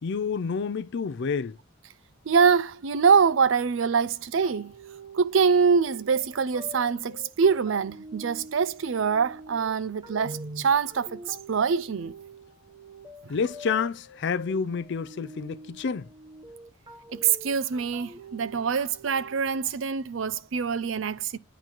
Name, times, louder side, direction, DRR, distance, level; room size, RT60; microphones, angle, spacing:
voice 1, 0.0-1.6 13.3-16.1, left 5 dB, 60° left, 0.4 m, -29 dB
voice 2, 2.3-4.7 5.1-12.2 13.2-13.3 17.1-21.4, right 6 dB, 65° right, 0.5 m, -24 dB
sound 1, 4.4-19.8, right 1 dB, 20° right, 1.1 m, -46 dB
9.1 x 3.9 x 4.5 m
head